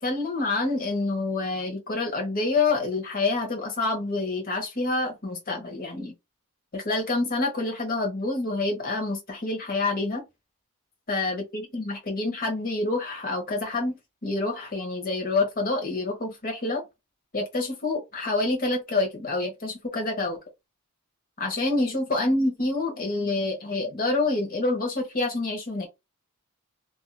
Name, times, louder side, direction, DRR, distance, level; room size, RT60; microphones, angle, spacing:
voice 1, 0.0-6.1 6.7-10.2 11.1-16.8 17.3-20.4 21.4-25.9, left 2 dB, 40° left, 1.0 m, -27 dB
2.7 x 2.6 x 2.2 m
head